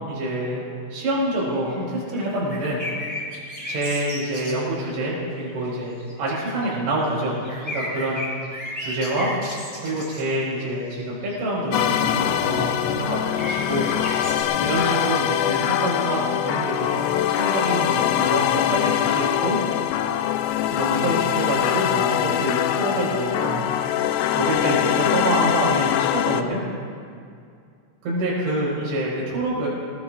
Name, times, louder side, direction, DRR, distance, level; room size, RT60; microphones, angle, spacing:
voice 1, 0.1-0.6 0.9-2.8 3.7-7.4 7.7-8.2 8.8-9.3 9.8-13.9 14.6-19.6 20.7-23.6 24.3-26.6 28.0-29.7, right 1 dB, 70° right, -5 dB, 7.1 m, -26 dB
sound 1, 1.4-1.8 2.1-4.5 5.4-5.5 5.8-10.2 11.0-14.4, left 1 dB, ahead, 4.4 m, -34 dB
sound 2, 11.7-26.4, left 11 dB, 85° left, 2.4 m, -23 dB
25.0 x 20.0 x 2.5 m, 2.3 s
omnidirectional pair, 5.5 m